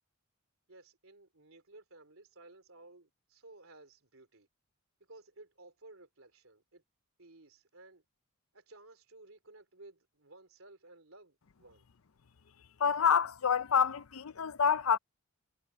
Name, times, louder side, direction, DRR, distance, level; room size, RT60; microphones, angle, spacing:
voice 1, 0.7-4.5 5.1-6.8 7.2-8.0 8.5-11.8, right 2 dB, 65° right, 4.5 m, -56 dB
voice 2, 12.8-15.0, left 7 dB, 70° left, 0.6 m, -27 dB
head